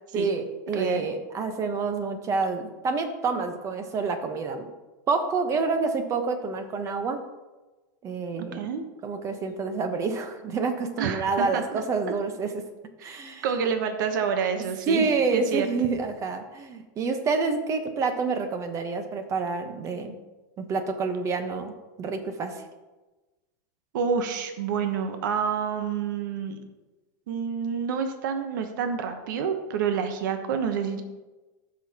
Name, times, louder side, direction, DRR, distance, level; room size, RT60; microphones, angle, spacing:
voice 1, 0.1-4.7 5.1-7.2 8.0-8.7 9.0-12.6 13.0-13.5 14.9-20.2 20.6-22.6, right 4 dB, 30° right, 7 dB, 1.1 m, -28 dB
voice 2, 0.7-1.1 8.5-8.8 11.0-11.6 13.0-15.7 23.9-26.6 27.3-31.0, right 6 dB, 70° right, 7 dB, 1.1 m, -28 dB
15.0 x 6.3 x 3.0 m, 1.2 s
supercardioid pair, 130°, 11 cm